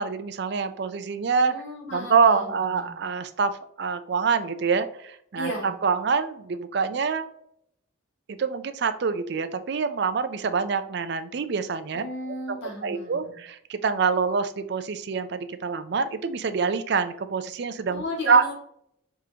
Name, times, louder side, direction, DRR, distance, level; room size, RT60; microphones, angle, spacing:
voice 1, 0.0-1.5 1.9-5.5 5.8-7.3 8.3-12.0 12.5-12.6 12.8-18.5, right 5 dB, 55° right, 10 dB, 0.4 m, -25 dB
voice 2, 1.5-2.9 5.3-5.7 11.9-13.3 17.9-18.5, equal, 60° left, -4 dB, 1.9 m, -35 dB
4.9 x 3.7 x 2.8 m, 0.71 s
head